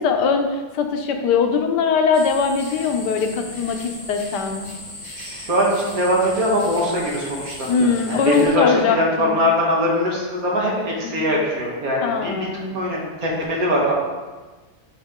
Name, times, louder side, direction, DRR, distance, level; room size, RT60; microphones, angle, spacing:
voice 1, 0.0-4.7 7.7-9.4 11.0-11.3 12.0-12.8, left 5 dB, 90° left, 5 dB, 1.3 m, -21 dB
sound 1, 2.1-8.5, left 1 dB, 50° left, 2.5 m, -37 dB
voice 2, 5.1-12.3 12.7-13.9, equal, 60° right, -3 dB, 1.9 m, -22 dB
10.0 x 3.6 x 3.6 m, 1.3 s
omnidirectional pair, 1.8 m